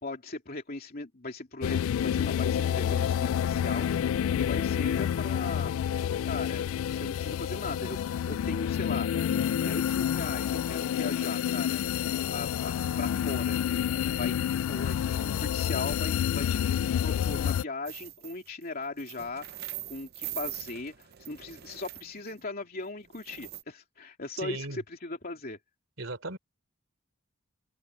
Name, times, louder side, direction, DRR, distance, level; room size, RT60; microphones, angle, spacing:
voice 1, 0.0-5.7 6.2-8.0 8.3-9.1 9.6-11.8 12.3-13.6 14.2-16.6 17.0-25.6, left 3 dB, 50° left, 3.0 m, -38 dB
sound 1, 1.6-17.6, left 9 dB, 80° left, 0.3 m, -28 dB
sound 2, 17.9-18.5 18.8-22.4 23.1-23.6, right 13 dB, 55° right, 0.7 m, -42 dB
voice 2, 24.4-24.8 26.0-26.4, right 2 dB, 70° right, 3.5 m, -36 dB
open air
head